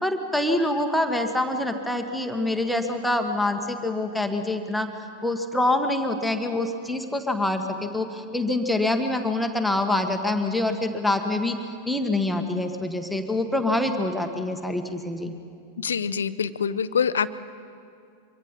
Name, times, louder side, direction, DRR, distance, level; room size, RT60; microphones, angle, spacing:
voice 1, 0.0-4.9 5.2-11.6 11.8-15.3, left 2 dB, ahead, 4 dB, 1.6 m, -25 dB
voice 2, 15.8-17.3, left 7 dB, 70° left, 14 dB, 0.6 m, -25 dB
24.0 x 24.0 x 5.5 m, 2.4 s
figure-of-eight pair, 90°, 0 cm